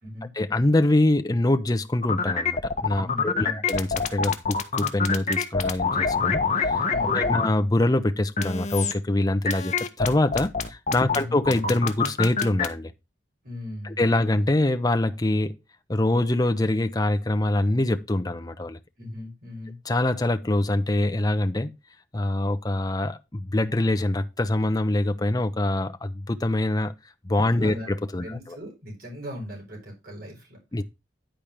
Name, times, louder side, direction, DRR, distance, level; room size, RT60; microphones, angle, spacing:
voice 1, 0.3-9.7 10.0-12.9 13.8-15.6 15.9-18.8 19.9-21.7 22.1-26.9 27.2-28.6 30.7-30.8, left 1 dB, 20° left, 0.7 m, -24 dB
sound 1, 2.0-7.5 8.4-8.9 9.4-12.7, left 5 dB, 40° left, 1.0 m, -25 dB
voice 2, 3.0-3.6 6.9-7.4 11.1-11.4 13.4-14.0 19.0-19.8 27.6-27.9 28.2-30.6, left 1 dB, 55° right, 4.1 m, -38 dB
10.5 x 4.4 x 5.1 m
head